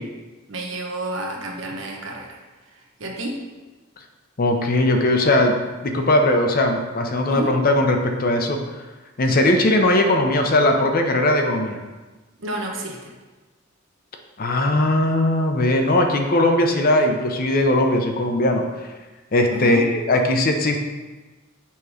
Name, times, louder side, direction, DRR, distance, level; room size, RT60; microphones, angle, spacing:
voice 1, 0.5-2.4 2.7-3.4 7.3-7.6 12.4-13.1 19.5-19.8, right 1 dB, 70° right, 1 dB, 1.0 m, -29 dB
voice 2, 4.4-5.6 5.8-8.6 9.2-11.8 14.4-18.6 19.3-20.9, left 1 dB, 45° left, 4 dB, 0.6 m, -19 dB
7.0 x 3.1 x 4.9 m, 1.2 s
head